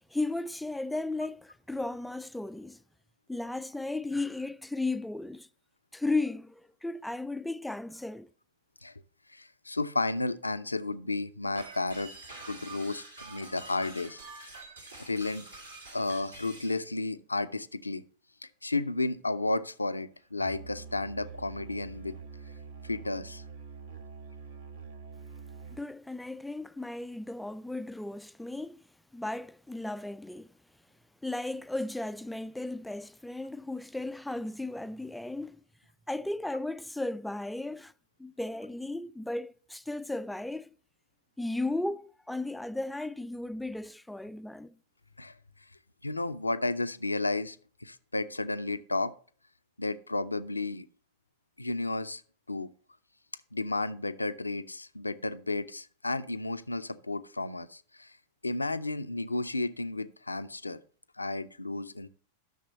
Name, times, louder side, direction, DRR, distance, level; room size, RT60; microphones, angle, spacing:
voice 1, 0.1-2.8 3.3-5.5 5.9-8.3 25.7-28.8 29.1-30.5 31.2-35.6 36.1-37.9 38.2-40.7 41.4-44.7, left 2 dB, 5° left, 0.3 m, -35 dB
voice 2, 9.3-12.1 12.5-14.2 15.0-15.5 15.9-18.0 18.4-22.1 22.8-23.4 45.2-45.4 46.0-49.1 49.8-50.9 51.6-52.2 52.5-52.7 53.5-58.1 58.4-60.8 61.2-62.1, left 2 dB, 80° left, 0.6 m, -32 dB
sound 1, 11.6-16.8, right 3 dB, 80° right, 2.8 m, -47 dB
Musical instrument, 20.4-25.9, right 5 dB, 65° right, 1.1 m, -45 dB
13.0 x 6.6 x 4.2 m
figure-of-eight pair, 90°, 0 cm